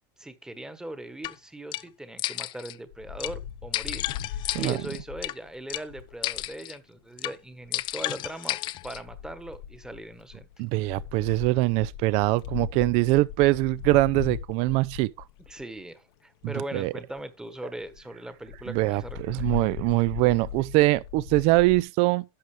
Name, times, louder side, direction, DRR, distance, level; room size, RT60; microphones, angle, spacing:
voice 1, 0.2-8.6 8.8-10.5 15.5-19.6, right 1 dB, 5° right, 1.2 m, -40 dB
sound 1, 1.2-1.3 1.7-1.8 2.2-2.8 3.2-3.3 3.7-5.3 5.7-5.8 6.2-6.8 7.2-7.4 7.7-9.0, left 15 dB, 40° left, 0.4 m, -32 dB
Wind, 2.9-6.6 7.7-8.1 8.8-15.8 16.4-16.5 16.7-16.8 17.2-17.3 17.6-17.7 17.9-18.0 18.5-21.8, left 9 dB, 80° left, 1.1 m, -39 dB
voice 2, 10.6-15.1 16.7-16.9 18.7-22.2, right 20 dB, 55° right, 0.5 m, -23 dB
11.5 x 7.7 x 3.3 m
supercardioid pair, 140°, 12 cm